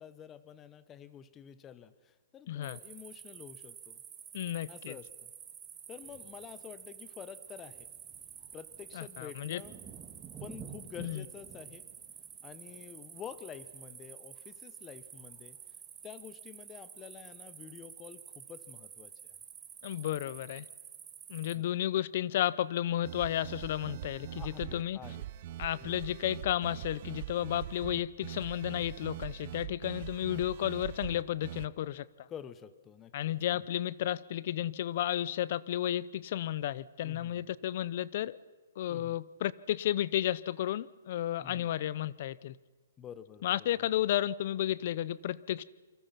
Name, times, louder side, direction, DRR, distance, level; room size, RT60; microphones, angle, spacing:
voice 1, 0.0-4.0 4.7-5.3 5.9-7.9 8.5-9.8 10.4-11.8 12.4-15.6 16.0-19.3 21.5-21.6 24.3-25.3 25.8-25.9 32.3-33.6 37.0-37.5 38.9-39.1 41.4-41.7 43.0-43.9, left 9 dB, 15° left, 1.0 m, -49 dB
voice 2, 2.5-2.8 4.3-5.0 8.9-9.6 11.0-11.2 19.8-20.7 21.3-25.0 25.6-32.3 33.1-38.4 38.8-42.5 43.4-45.6, left 12 dB, 45° left, 0.8 m, -33 dB
sound 1, 2.6-21.6, right 8 dB, 15° right, 1.8 m, -49 dB
sound 2, 23.0-31.7, right 12 dB, 40° right, 0.7 m, -42 dB
28.5 x 25.5 x 5.9 m
hypercardioid pair, 165°, 0 cm